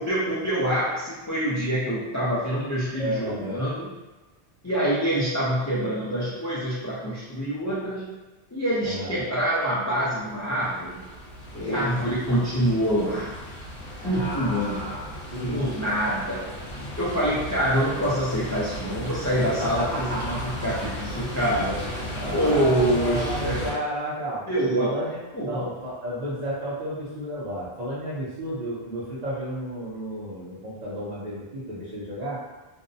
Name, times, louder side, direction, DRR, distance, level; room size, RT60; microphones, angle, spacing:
voice 1, 0.0-3.9 4.6-8.1 8.5-11.0 11.6-13.3 14.0-14.8 15.4-16.4 17.0-22.1 22.3-23.6 24.5-24.9 25.3-25.7, right 1 dB, 30° left, -9 dB, 0.3 m, -26 dB
voice 2, 2.9-3.6 8.8-9.2 11.5-12.1 14.0-16.1 19.4-20.5 22.1-24.5 24.8-32.4, equal, 45° right, -7 dB, 0.7 m, -32 dB
sound 1, 10.1-23.7, equal, 55° left, 0.9 m, -35 dB
2.6 x 2.0 x 2.6 m, 1.2 s
omnidirectional pair, 1.1 m